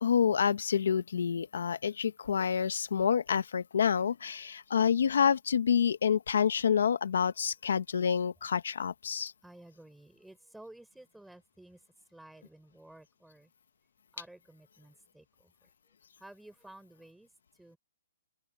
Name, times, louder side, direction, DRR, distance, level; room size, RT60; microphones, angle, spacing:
voice 1, 0.0-9.3, left 7 dB, 70° left, 0.8 m, -28 dB
voice 2, 9.4-11.8 12.1-13.5 14.1-15.5 16.2-17.3 17.6-17.8, right 1 dB, ahead, 3.3 m, -53 dB
open air
hypercardioid pair, 175°, 0 cm